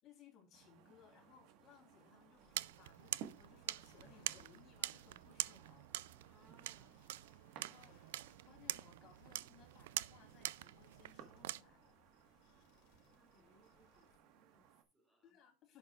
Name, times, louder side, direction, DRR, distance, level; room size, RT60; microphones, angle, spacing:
voice 1, 0.0-5.9 7.6-12.0 15.2-15.8, left 7 dB, 40° left, 3.4 m, -65 dB
sound 1, 0.5-14.8, right 9 dB, 55° right, 1.5 m, -61 dB
sound 2, 2.3-14.2, left 7 dB, 65° left, 2.5 m, -73 dB
sound 3, 2.5-11.6, right 15 dB, 85° right, 0.3 m, -45 dB
voice 2, 6.3-7.0 13.1-15.4, right 1 dB, 10° right, 2.5 m, -71 dB
11.0 x 7.6 x 2.4 m
supercardioid pair, 145°, 0 cm